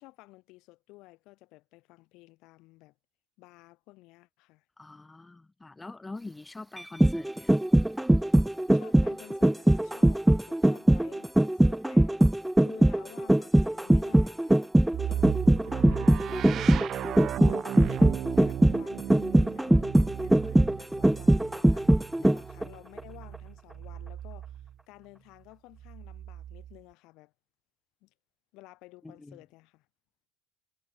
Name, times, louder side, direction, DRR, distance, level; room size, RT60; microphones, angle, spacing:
voice 1, 0.0-2.9 3.4-4.6 8.7-27.3 28.0-28.1 28.5-29.9, left 21 dB, 60° left, 6.3 m, -53 dB
voice 2, 4.8-7.6 22.2-22.4 29.0-29.4, left 3 dB, 15° left, 3.8 m, -44 dB
sound 1, 6.8-22.6 23.0-23.1, right 1 dB, 5° right, 0.8 m, -22 dB
sound 2, 14.9-24.7 25.8-26.8, right 11 dB, 45° right, 1.7 m, -36 dB
figure-of-eight pair, 65°, 0 cm